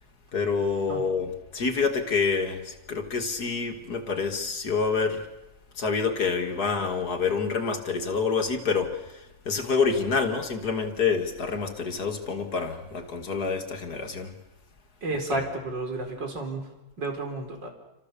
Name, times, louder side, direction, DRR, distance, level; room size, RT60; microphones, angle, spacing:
voice 1, 0.3-5.3 5.8-14.3 15.3-15.4, left 5 dB, 60° left, 2.7 m, -27 dB
voice 2, 15.0-16.7 17.0-17.7, right 2 dB, 80° right, 5.2 m, -31 dB
29.0 x 26.5 x 7.0 m
omnidirectional pair, 1.9 m